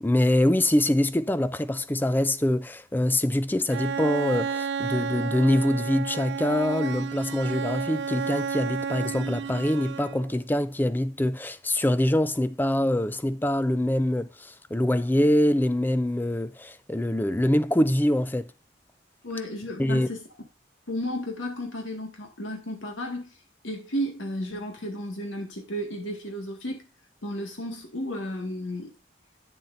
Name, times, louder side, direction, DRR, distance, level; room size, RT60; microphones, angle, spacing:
voice 1, 0.0-18.5 19.8-20.1, left 1 dB, 10° left, 0.4 m, -24 dB
Bowed string instrument, 3.7-10.4, right 6 dB, 60° right, 0.3 m, -31 dB
voice 2, 19.2-20.2 20.9-23.4 23.6-26.9 27.2-28.9, equal, 80° left, 1.8 m, -33 dB
9.3 x 7.3 x 2.6 m
head